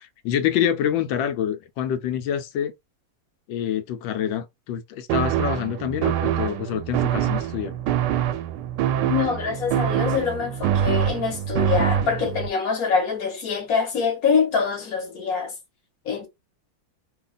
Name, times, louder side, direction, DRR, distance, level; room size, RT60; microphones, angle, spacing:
voice 1, 0.0-2.7 3.5-7.8, left 9 dB, 75° left, 1.3 m, -26 dB
sound 1, 5.1-12.5, right 10 dB, 75° right, 1.1 m, -24 dB
voice 2, 9.0-15.5 16.0-16.3, left 6 dB, 50° left, 1.4 m, -24 dB
3.2 x 2.3 x 3.8 m
omnidirectional pair, 2.1 m